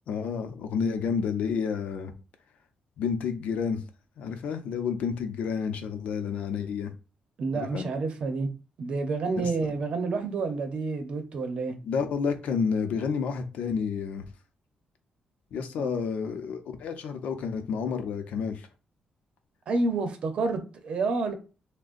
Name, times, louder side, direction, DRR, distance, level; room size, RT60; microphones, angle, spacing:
voice 1, 0.1-2.1 3.0-3.8 4.2-6.9 7.5-7.8 9.4-9.5 11.8-14.3 15.5-18.7, left 6 dB, 85° left, 0.6 m, -30 dB
voice 2, 7.4-8.5 8.8-11.8 15.8-16.0 19.7-21.3, right 3 dB, 50° right, 0.8 m, -29 dB
6.3 x 2.2 x 2.5 m
wide cardioid pair, 170°, 2 cm